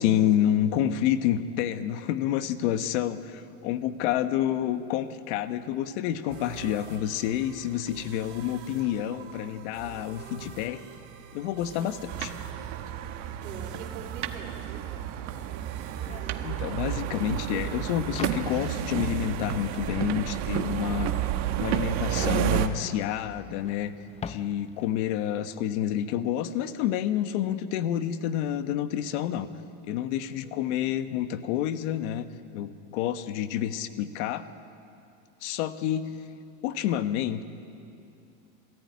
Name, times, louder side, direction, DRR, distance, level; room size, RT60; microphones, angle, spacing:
voice 1, 0.0-10.8 11.3-12.3 16.4-21.2 21.6-23.9 24.3-29.5 29.8-32.2 32.5-34.4 35.4-36.1 36.6-37.4, left 11 dB, 65° left, 11 dB, 1.3 m, -28 dB
sound 1, 6.3-20.0, right 8 dB, 65° right, 2.6 m, -46 dB
sound 2, 12.1-22.7, right 11 dB, 45° right, 1.4 m, -31 dB
voice 2, 13.4-15.3 30.4-30.8, right 5 dB, 85° right, 5 dB, 3.6 m, -45 dB
sound 3, 14.4-14.5 14.7-25.1, left 7 dB, 15° left, 0.6 m, -45 dB
27.0 x 14.5 x 9.5 m, 2.7 s
supercardioid pair, 135°, 38 cm